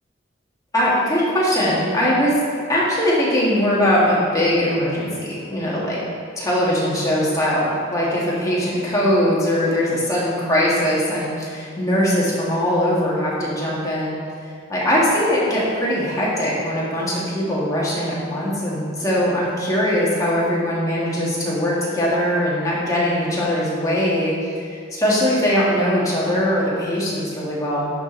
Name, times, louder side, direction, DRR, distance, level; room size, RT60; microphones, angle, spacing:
voice 1, 0.7-2.3 2.7-6.0 6.4-14.1 14.7-27.9, equal, 20° left, -7 dB, 1.8 m, -21 dB
10.5 x 5.1 x 3.9 m, 2.3 s
head